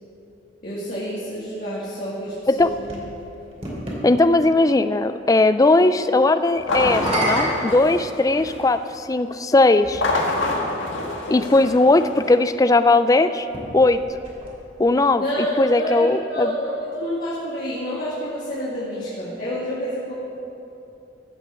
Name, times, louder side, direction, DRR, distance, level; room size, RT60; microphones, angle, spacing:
voice 1, 0.6-3.0 15.2-20.2, equal, 45° left, -8 dB, 2.1 m, -28 dB
sound 1, 2.2-4.0 6.8-8.6 9.6-9.7 13.4-14.9, right 1 dB, 35° right, 2.7 m, -30 dB
voice 2, 4.0-10.0 11.3-13.5 13.7-14.0 14.8-15.2 15.6-16.5, left 2 dB, 20° left, 11 dB, 0.3 m, -18 dB
sound 2, 6.6-8.8 9.8-12.4, left 2 dB, 80° left, 1.7 m, -27 dB
15.0 x 6.2 x 6.9 m, 2.8 s
head